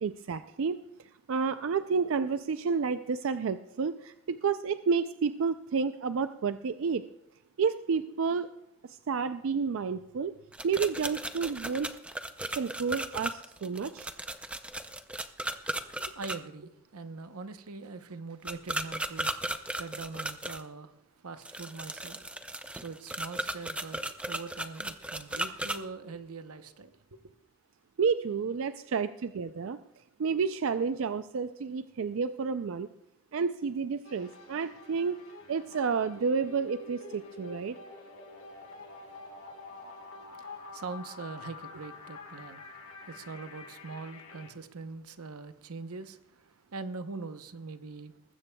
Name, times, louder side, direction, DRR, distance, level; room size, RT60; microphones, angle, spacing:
voice 1, 0.0-7.1 7.6-8.5 8.8-10.3 10.6-11.9 12.6-14.1 28.0-29.8 30.2-32.9 33.3-35.2 35.5-37.8, right 5 dB, 65° right, 11 dB, 0.4 m, -30 dB
sound 1, 10.5-16.4 18.5-20.6 21.4-25.8, right 1 dB, 5° right, 0.4 m, -36 dB
voice 2, 15.9-20.9 21.2-27.2 38.7-39.4 39.8-48.2, right 4 dB, 85° right, 10 dB, 0.8 m, -43 dB
sound 2, 34.0-44.5, left 3 dB, 75° left, 3.3 m, -48 dB
20.0 x 15.0 x 2.3 m, 0.88 s
head